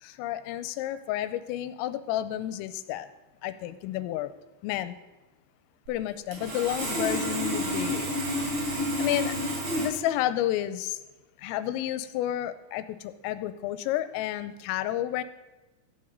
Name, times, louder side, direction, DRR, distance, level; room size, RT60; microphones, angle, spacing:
voice 1, 0.0-3.1 3.4-4.3 4.6-5.0 5.9-8.1 9.0-9.4 9.7-11.0 11.4-15.2, left 13 dB, 90° left, 13 dB, 3.3 m, -31 dB
Sawing, 6.3-9.9, equal, 60° right, 5.3 m, -29 dB
15.0 x 8.7 x 5.2 m, 1.1 s
omnidirectional pair, 5.9 m